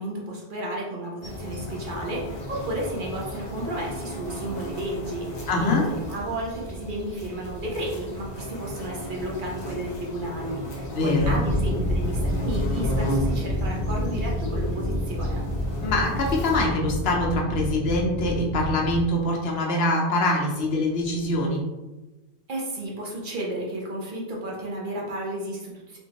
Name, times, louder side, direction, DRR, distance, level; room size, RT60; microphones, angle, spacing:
voice 1, 0.0-15.5 22.5-26.0, right 1 dB, 55° right, -2 dB, 0.8 m, -32 dB
sound 1, 1.2-16.7, equal, 90° left, 1.2 m, -35 dB
voice 2, 5.5-5.9 10.9-11.5 15.8-21.7, left 2 dB, 70° left, 0 dB, 0.9 m, -24 dB
sound 2, 11.2-19.1, equal, 80° right, 1.8 m, -28 dB
3.6 x 2.5 x 2.8 m, 1.1 s
omnidirectional pair, 1.1 m